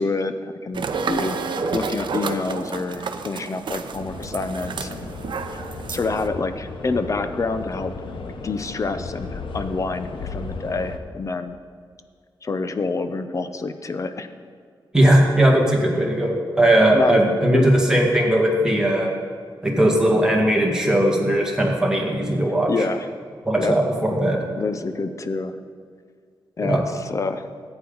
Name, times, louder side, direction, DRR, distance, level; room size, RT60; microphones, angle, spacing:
voice 1, 0.0-1.4 1.7-5.1 5.5-5.6 5.9-11.6 12.4-14.3 16.9-17.2 17.5-17.7 22.7-23.1 23.6-23.8 24.6-25.6 26.6-27.5, left 3 dB, 40° left, 10 dB, 0.6 m, -27 dB
sound 1, 0.7-6.3, right 5 dB, 65° right, 0.6 m, -30 dB
sound 2, 3.9-11.0, left 4 dB, 75° left, 0.8 m, -35 dB
voice 2, 14.9-19.1 19.6-22.7 23.5-24.4 26.6-26.8, right 1 dB, 5° right, -2 dB, 1.9 m, -18 dB
14.0 x 8.8 x 3.9 m, 2.1 s
wide cardioid pair, 145°, 9 cm